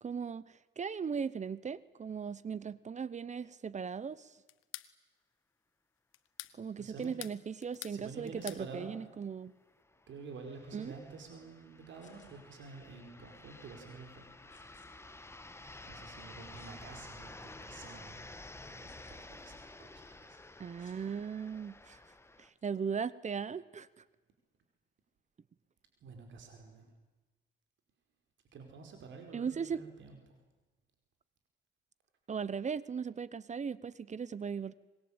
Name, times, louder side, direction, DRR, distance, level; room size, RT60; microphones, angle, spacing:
voice 1, 0.0-4.3 6.6-9.5 10.7-10.9 20.6-22.0 22.4-23.9 29.3-29.8 32.3-34.7, right 6 dB, 35° right, 19 dB, 0.9 m, -38 dB
sound 1, 4.5-4.9 6.1-6.6 7.0-8.0 8.2-8.6, left 14 dB, 85° left, 1.1 m, -46 dB
voice 2, 6.8-7.1 7.9-9.1 10.1-14.2 15.8-18.3 18.7-20.4 26.0-26.9 28.5-30.2, right 4 dB, 70° right, 4 dB, 5.1 m, -49 dB
sound 2, 8.4-8.5 8.8-8.9 9.7-22.5, left 2 dB, 15° left, 1.6 m, -52 dB
sound 3, 12.0-12.3 14.5-14.9 16.5-16.7 17.4-17.5 18.9-19.3 20.8-21.0 22.6-22.8, left 5 dB, 35° left, 6.4 m, -64 dB
25.5 x 21.5 x 8.9 m, 1.2 s
cardioid pair, 90°, 20 cm